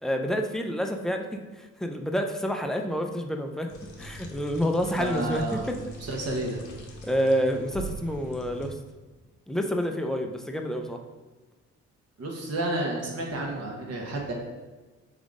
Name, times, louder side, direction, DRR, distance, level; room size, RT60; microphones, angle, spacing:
voice 1, 0.0-3.7 4.0-5.8 7.0-8.8 9.5-11.0, equal, ahead, 4 dB, 0.4 m, -28 dB
sound 1, 3.7-8.7, right 1 dB, 85° left, 0.9 m, -42 dB
voice 2, 5.0-5.7 6.0-6.6 12.2-14.3, right 2 dB, 55° right, -1 dB, 1.2 m, -31 dB
3.7 x 3.6 x 3.6 m, 1.2 s
cardioid pair, 90°, 30 cm